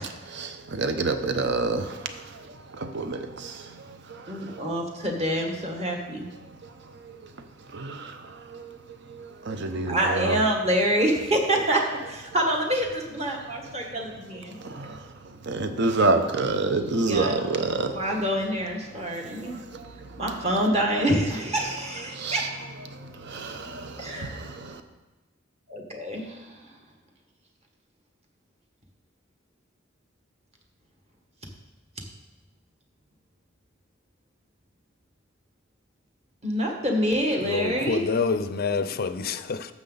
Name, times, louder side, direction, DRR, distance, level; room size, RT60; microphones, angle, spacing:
voice 1, 0.0-2.5 2.7-4.8 7.0-7.2 7.7-8.8 9.1-10.5 10.9-12.8 13.5-13.7 14.6-15.0 15.4-18.1 18.5-18.7 19.1-20.4 21.0-21.1 21.4-24.8, right 3 dB, 60° right, 0.8 m, -30 dB
voice 2, 4.3-6.2 9.9-11.8 12.3-12.8 13.1-14.0 17.1-17.4 18.0-19.5 20.2-21.8 22.3-22.4 24.1-24.3 25.9-26.3 36.4-38.1, right 1 dB, 35° right, 1.6 m, -25 dB
voice 3, 37.4-39.7, left 4 dB, 50° left, 0.5 m, -27 dB
12.0 x 7.3 x 4.0 m
head